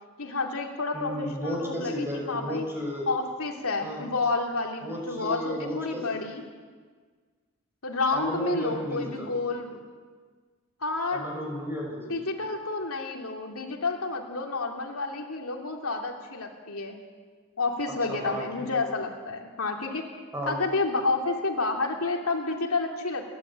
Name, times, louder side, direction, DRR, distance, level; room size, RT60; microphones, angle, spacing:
voice 1, 0.2-2.6 3.1-6.4 7.8-9.8 10.8-11.2 12.1-17.0 17.6-20.1 20.5-23.2, left 3 dB, 80° left, 1 dB, 2.8 m, -30 dB
voice 2, 0.9-3.1 3.8-4.0 4.8-6.1 8.1-9.3 11.1-12.3 18.1-18.4 20.3-20.5, equal, 10° right, -2 dB, 6.1 m, -33 dB
29.5 x 11.5 x 8.9 m, 1.5 s
head